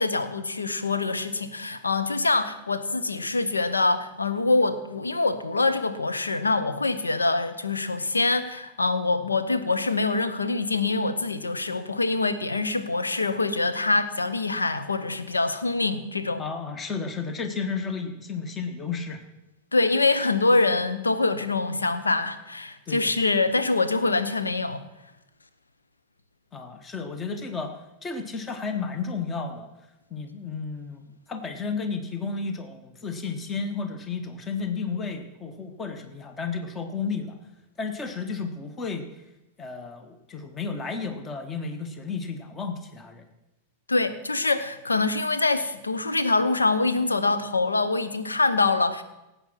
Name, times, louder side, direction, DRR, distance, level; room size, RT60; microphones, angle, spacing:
voice 1, 0.0-16.4 19.7-24.9 43.9-49.0, left 3 dB, 80° left, 10 dB, 1.0 m, -24 dB
voice 2, 16.4-19.2 22.9-23.1 26.5-27.7 28.0-29.7 30.1-37.4 37.8-39.0 39.6-43.3, left 5 dB, 20° left, 8 dB, 1.4 m, -32 dB
18.0 x 8.4 x 6.0 m, 0.96 s
figure-of-eight pair, 90°, 0 cm